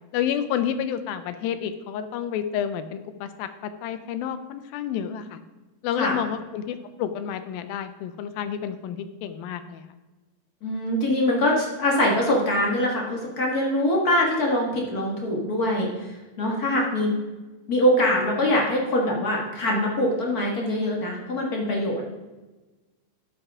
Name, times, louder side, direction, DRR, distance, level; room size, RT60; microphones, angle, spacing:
voice 1, 0.1-5.4 5.8-9.8, left 9 dB, 80° left, 11 dB, 2.4 m, -30 dB
voice 2, 10.6-15.9 16.4-17.1 17.7-22.0, left 1 dB, 50° left, -1 dB, 1.0 m, -23 dB
12.0 x 8.9 x 3.6 m, 1.2 s
omnidirectional pair, 4.4 m